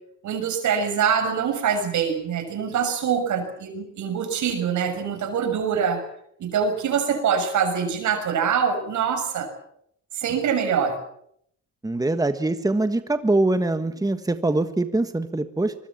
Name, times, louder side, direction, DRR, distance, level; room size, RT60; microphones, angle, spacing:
voice 1, 0.2-6.0 6.4-9.5 10.1-11.0, right 7 dB, 75° right, 7 dB, 6.6 m, -24 dB
voice 2, 11.8-15.7, right 2 dB, 10° right, 10 dB, 1.5 m, -23 dB
25.0 x 21.0 x 7.4 m, 0.71 s
cardioid pair, 90°, 30 cm